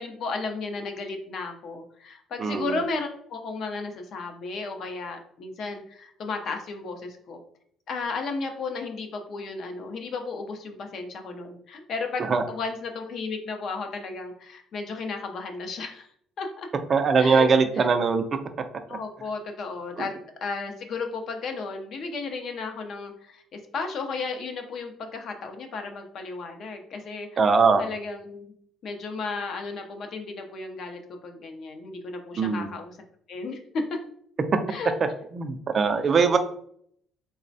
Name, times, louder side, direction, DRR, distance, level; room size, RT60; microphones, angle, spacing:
voice 1, 0.0-7.4 7.9-16.1 16.4-16.7 17.2-17.5 17.7-17.9 18.9-20.1 20.4-27.4 27.8-28.5 28.8-33.0 33.3-33.6 33.9-34.0 34.7-34.9, left 4 dB, 55° left, 4 dB, 0.4 m, -34 dB
voice 2, 2.4-2.8 12.3-12.4 16.9-18.4 18.9-19.0 20.0-20.1 27.4-27.9 32.4-32.7 35.3-36.4, right 5 dB, 35° right, 8 dB, 0.3 m, -21 dB
3.2 x 2.0 x 2.6 m, 0.65 s
cardioid pair, 125°, 0 cm